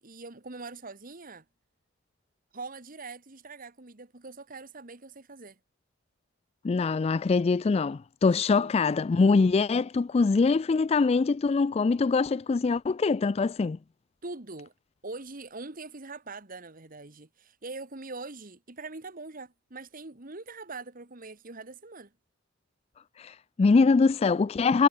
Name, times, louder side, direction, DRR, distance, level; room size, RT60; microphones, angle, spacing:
voice 1, 0.0-1.4 2.5-5.6 8.3-8.7 14.2-14.7 15.0-22.1, right 3 dB, 45° right, 1.8 m, -43 dB
voice 2, 6.6-13.8 23.2-24.9, left 4 dB, 30° left, 0.3 m, -23 dB
head